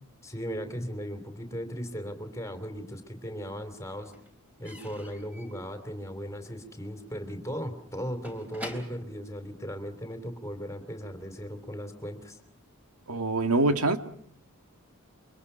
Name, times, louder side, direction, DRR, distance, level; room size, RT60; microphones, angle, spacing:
voice 1, 0.2-4.1 4.6-12.4, equal, 15° left, 7 dB, 3.1 m, -37 dB
Slam / Squeak / Wood, 2.5-3.2 3.5-10.3, equal, 5° right, 3.6 m, -48 dB
voice 2, 13.1-14.0, right 2 dB, 90° right, 8 dB, 1.9 m, -24 dB
28.0 x 24.0 x 5.7 m, 0.62 s
head